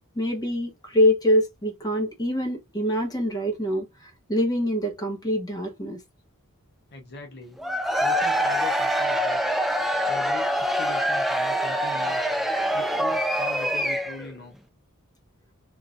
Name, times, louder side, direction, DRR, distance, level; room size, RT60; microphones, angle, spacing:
voice 1, 0.1-6.0, equal, 20° left, 1.2 m, -25 dB
voice 2, 6.9-7.6 8.0-9.6 10.1-12.2 12.7-14.6, left 3 dB, 50° left, 0.7 m, -41 dB
Cheering / Crowd, 7.6-14.3, equal, ahead, 0.4 m, -25 dB
3.7 x 2.5 x 2.6 m
head